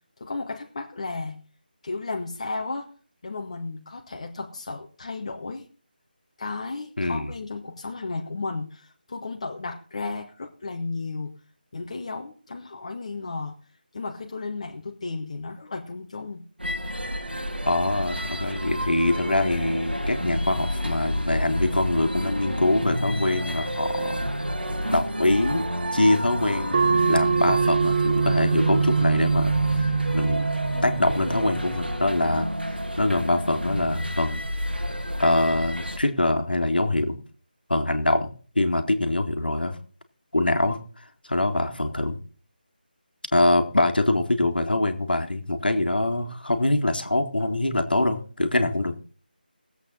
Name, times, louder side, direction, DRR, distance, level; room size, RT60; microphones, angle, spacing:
voice 1, 0.2-1.4 1.8-2.9 3.2-5.6 6.4-11.3 11.7-13.6 13.9-16.4, left 3 dB, 40° left, 3 dB, 1.2 m, -34 dB
voice 2, 7.0-7.3 17.6-24.3 24.9-29.9 30.1-30.5 30.8-32.5 33.0-34.4 35.2-37.2 37.7-39.8 40.3-42.2 43.3-49.0, left 2 dB, 65° left, 7 dB, 2.0 m, -24 dB
sound 1, 16.6-36.0, equal, 90° right, 2.3 m, -30 dB
sound 2, 26.7-31.8, right 5 dB, 30° right, 0.7 m, -24 dB
19.0 x 8.1 x 4.1 m, 0.42 s
figure-of-eight pair, 160°, 5 cm